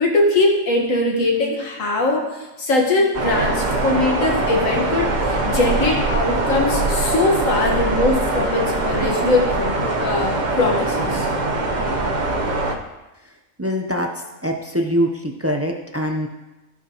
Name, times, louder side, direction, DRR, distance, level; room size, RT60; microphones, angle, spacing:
voice 1, 0.0-11.3, left 2 dB, 70° left, 0 dB, 1.9 m, -21 dB
sound 1, 3.1-12.7, right 2 dB, 40° right, 0.9 m, -22 dB
voice 2, 13.6-14.1 14.4-16.3, equal, 15° right, 2 dB, 0.5 m, -23 dB
16.0 x 5.9 x 3.0 m, 1.0 s
omnidirectional pair, 1.4 m